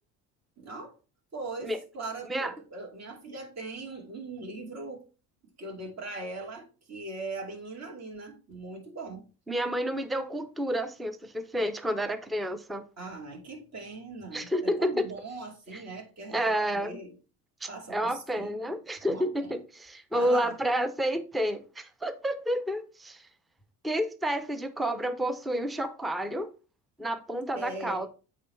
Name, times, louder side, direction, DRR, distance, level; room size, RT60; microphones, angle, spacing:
voice 1, 0.6-1.0 1.3-5.0 5.6-9.3 13.0-16.4 16.7-17.2 17.7-19.6 20.1-20.6 27.5-28.1, right 3 dB, 35° right, 2.5 m, -40 dB
voice 2, 9.5-12.9 14.3-15.1 16.3-17.0 17.6-23.3 23.8-26.5 27.0-28.1, equal, ahead, 0.6 m, -30 dB
8.4 x 3.2 x 4.2 m
hypercardioid pair, 75°, 46 cm